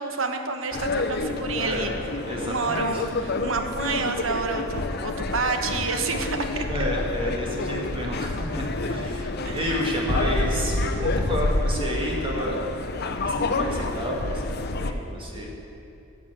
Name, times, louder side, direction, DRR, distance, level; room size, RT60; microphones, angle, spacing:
voice 1, 0.0-1.9 2.4-6.6 9.4-9.7, right 4 dB, 75° right, 6 dB, 1.2 m, -29 dB
sound 1, 0.7-14.9, left 2 dB, 55° left, 0.8 m, -28 dB
voice 2, 1.6-1.9 2.3-3.0 6.7-12.6 13.2-14.5 14.7-15.5, equal, 25° right, -2 dB, 2.1 m, -30 dB
15.0 x 7.5 x 7.9 m, 2.9 s
head